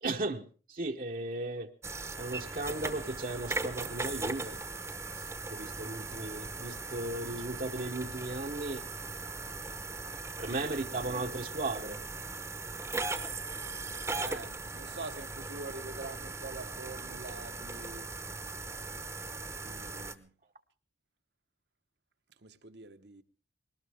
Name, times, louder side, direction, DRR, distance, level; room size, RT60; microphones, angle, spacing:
voice 1, 0.0-1.7 2.2-4.6 5.5-8.9 10.4-12.0, right 2 dB, 50° right, 1.0 m, -36 dB
sound 1, 1.8-20.1, right 3 dB, 15° right, 0.9 m, -39 dB
voice 2, 14.1-18.1 19.6-20.3 22.4-23.2, right 3 dB, 75° right, 1.2 m, -45 dB
21.0 x 19.0 x 3.5 m
head